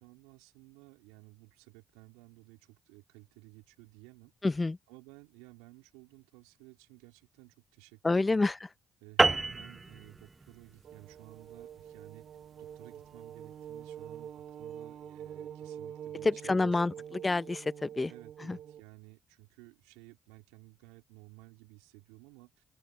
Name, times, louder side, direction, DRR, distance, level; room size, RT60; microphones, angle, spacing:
voice 1, 0.0-4.3 4.9-8.5 9.0-12.3 12.6-17.0 18.1-22.5, right 24 dB, 85° right, 3.9 m, -55 dB
voice 2, 4.4-4.8 8.0-8.6 16.2-18.1 18.4-18.6, left 3 dB, 30° left, 0.8 m, -28 dB
sound 1, 9.2-13.9, right 3 dB, 30° right, 0.9 m, -31 dB
sound 2, 10.8-18.8, right 9 dB, 65° right, 6.9 m, -46 dB
hypercardioid pair, 45°, 0 cm